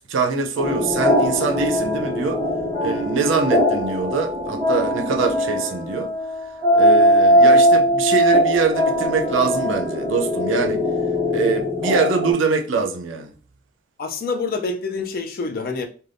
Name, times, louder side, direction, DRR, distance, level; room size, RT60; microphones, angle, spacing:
voice 1, 0.1-2.4 2.8-6.1 6.7-10.8 11.3-13.3, right 4 dB, 65° right, 0.5 m, -23 dB
sound 1, 0.6-12.3, equal, 25° left, 1.2 m, -20 dB
voice 2, 14.0-15.9, left 4 dB, 45° left, 0.4 m, -26 dB
2.5 x 2.2 x 3.3 m
head